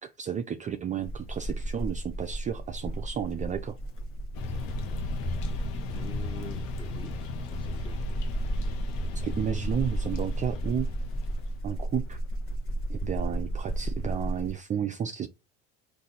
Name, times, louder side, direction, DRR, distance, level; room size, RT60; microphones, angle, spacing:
voice 1, 0.0-3.7 9.1-10.9 11.6-12.2 12.9-15.3, right 8 dB, 25° right, 0.4 m, -32 dB
sound 1, 1.0-14.5, right 1 dB, 45° left, 1.2 m, -33 dB
sound 2, 4.3-11.6, left 4 dB, 80° left, 1.0 m, -37 dB
voice 2, 5.9-8.0, left 2 dB, 15° left, 1.3 m, -45 dB
3.9 x 2.6 x 4.0 m
supercardioid pair, 105°, 32 cm